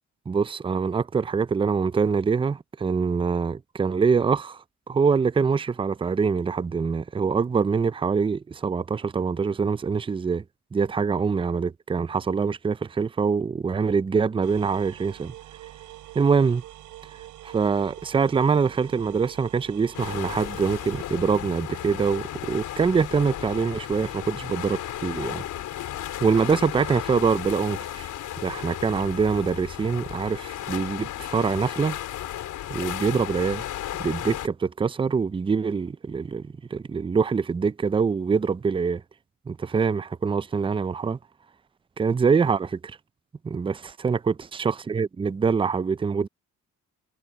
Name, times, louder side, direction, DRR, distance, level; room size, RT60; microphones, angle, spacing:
voice 1, 0.3-10.4 10.7-15.3 16.1-16.6 17.4-25.4 26.2-28.1 28.4-32.0 32.7-33.6 34.0-39.0 39.5-41.2 42.0-42.8 43.4-43.7 44.0-46.3, right 5 dB, 15° right, 0.5 m, -24 dB
sound 1, 14.4-21.0, right 15 dB, 90° right, 6.6 m, -44 dB
sound 2, 19.9-34.5, left 12 dB, 80° left, 4.8 m, -34 dB
cardioid pair, 90°, 30 cm